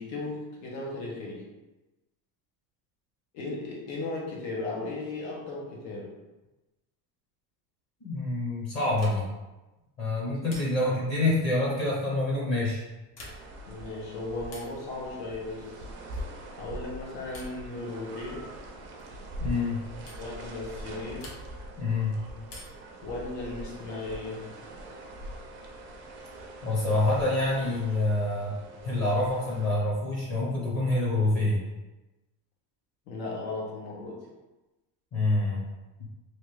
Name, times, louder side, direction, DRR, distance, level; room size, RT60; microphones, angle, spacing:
voice 1, 0.0-1.4 3.3-6.1 10.5-11.0 13.7-15.8 16.6-18.4 20.2-21.3 23.0-24.4 33.1-34.2, left 2 dB, 85° left, -2 dB, 1.2 m, -36 dB
voice 2, 8.0-9.2 10.0-12.8 19.4-19.8 21.8-22.2 26.6-28.5 28.8-31.6 35.1-35.6 36.0-36.1, left 2 dB, 35° left, -4 dB, 0.9 m, -26 dB
sound 1, 9.0-9.5 10.5-11.1 13.0-13.7 14.5-14.9 16.1-16.4 17.3-17.7 19.0-19.2 20.1-20.3 21.2-21.7 22.5-23.0 24.4-25.1, left 1 dB, 60° left, 1.0 m, -48 dB
sound 2, 13.2-29.7, equal, 30° right, 0.3 m, -43 dB
3.1 x 2.6 x 3.1 m, 1.1 s
cardioid pair, 145°, 49 cm